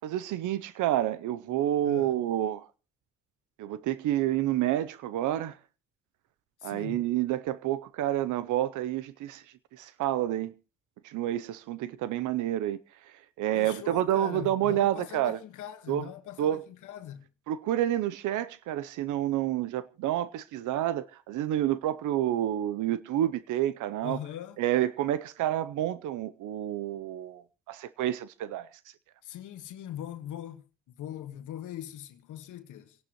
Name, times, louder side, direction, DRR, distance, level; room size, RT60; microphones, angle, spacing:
voice 1, 0.0-2.6 3.6-5.6 6.6-9.4 9.7-10.5 11.0-12.8 13.4-15.4 15.9-16.1 16.4-16.6 17.5-24.2 24.6-28.7, right 12 dB, 85° right, 0.7 m, -29 dB
voice 2, 1.8-2.2 6.6-7.0 13.5-17.3 24.0-24.6 29.2-33.0, left 11 dB, 80° left, 1.5 m, -41 dB
28.0 x 11.5 x 3.0 m
cardioid pair, 90°, 30 cm